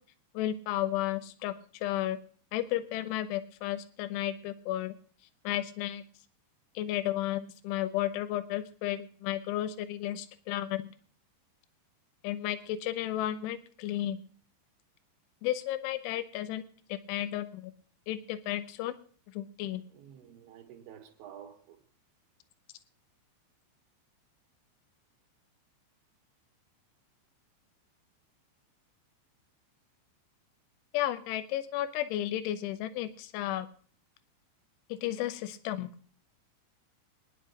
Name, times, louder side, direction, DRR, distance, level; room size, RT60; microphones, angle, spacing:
voice 1, 0.4-2.2 2.5-5.0 5.5-6.0 6.8-10.9 12.2-14.2 15.4-16.7 16.9-17.7 18.1-18.9 19.3-19.8 30.9-33.7 34.9-36.0, left 13 dB, 85° left, 3.3 m, -33 dB
voice 2, 19.9-21.8, right 9 dB, 75° right, 4.1 m, -50 dB
24.0 x 10.5 x 2.9 m
omnidirectional pair, 5.4 m